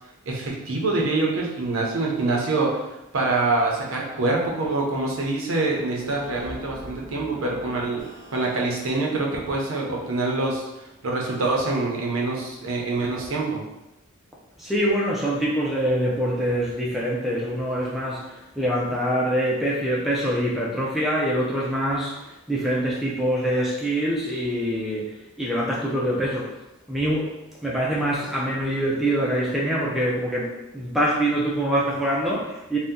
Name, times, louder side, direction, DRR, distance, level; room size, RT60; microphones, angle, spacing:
voice 1, 0.3-2.8 3.1-8.0 8.3-13.6, right 3 dB, 65° right, -1 dB, 0.6 m, -25 dB
sound 1, 5.9-9.2, equal, 85° left, 0.8 m, -42 dB
voice 2, 14.6-26.5 26.9-27.3 27.6-32.8, right 1 dB, ahead, -5 dB, 0.4 m, -25 dB
2.7 x 2.1 x 3.5 m, 0.94 s
head